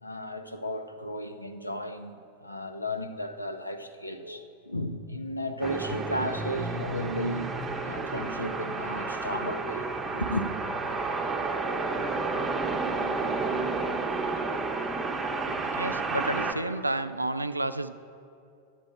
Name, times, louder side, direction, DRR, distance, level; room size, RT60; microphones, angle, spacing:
voice 1, 0.0-7.5 7.9-10.5, left 1 dB, 85° left, 0.6 m, -34 dB
sound 1, 5.6-16.5, right 3 dB, 20° right, 0.8 m, -31 dB
voice 2, 15.7-18.0, right 2 dB, 85° right, 0.4 m, -30 dB
11.5 x 7.5 x 4.6 m
figure-of-eight pair, 90°, 0 cm